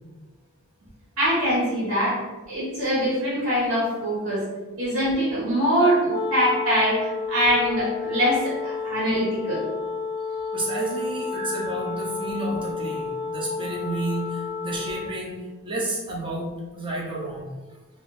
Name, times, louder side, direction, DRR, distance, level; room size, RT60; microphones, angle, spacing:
voice 1, 1.2-4.4 4.8-9.6 11.3-11.6, equal, 75° right, -9 dB, 1.5 m, -23 dB
Wind instrument woodwind instrument, 6.0-15.2, left 5 dB, 80° left, 0.4 m, -31 dB
voice 2, 10.5-17.5, right 2 dB, 25° right, -3 dB, 0.6 m, -31 dB
3.1 x 2.5 x 3.2 m, 1.2 s
head